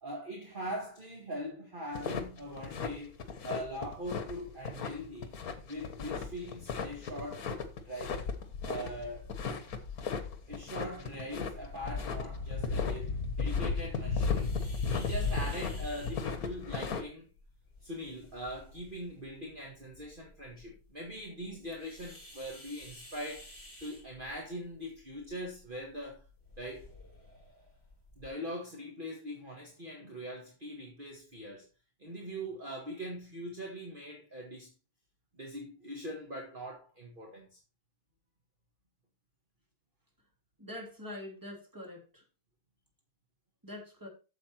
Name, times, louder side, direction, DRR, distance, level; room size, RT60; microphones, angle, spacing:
voice 1, 0.0-3.2 3.4-5.4 5.7-7.5 7.9-8.2 8.6-9.3 10.5-14.6 14.9-17.3 17.8-23.5 23.8-26.3 26.6-26.9 28.2-31.7 32.0-34.7 35.3-37.6, equal, 35° right, 2.0 m, -41 dB
sound 1, 1.9-17.0, left 5 dB, 75° left, 1.7 m, -35 dB
sound 2, 14.2-28.3, left 1 dB, 45° left, 4.1 m, -55 dB
voice 2, 40.6-42.2 43.6-44.1, left 1 dB, 15° right, 2.9 m, -44 dB
8.6 x 7.1 x 4.4 m
omnidirectional pair, 1.6 m